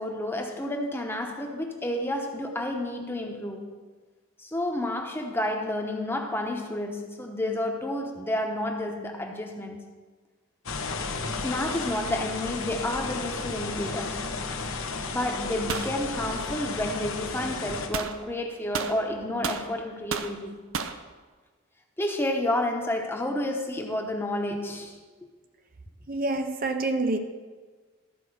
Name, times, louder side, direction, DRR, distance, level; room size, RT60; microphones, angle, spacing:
voice 1, 0.0-3.7 4.4-9.9 11.4-14.3 15.1-20.6 22.0-25.0, left 1 dB, 10° left, 0.9 m, -30 dB
sound 1, 10.7-17.9, left 4 dB, 85° left, 1.0 m, -33 dB
sound 2, 15.7-15.9 17.9-18.2 18.7-19.7 20.1-20.3 20.7-21.0, right 6 dB, 80° right, 0.6 m, -31 dB
voice 2, 26.1-27.2, right 2 dB, 45° right, 0.6 m, -27 dB
13.0 x 4.9 x 6.5 m
head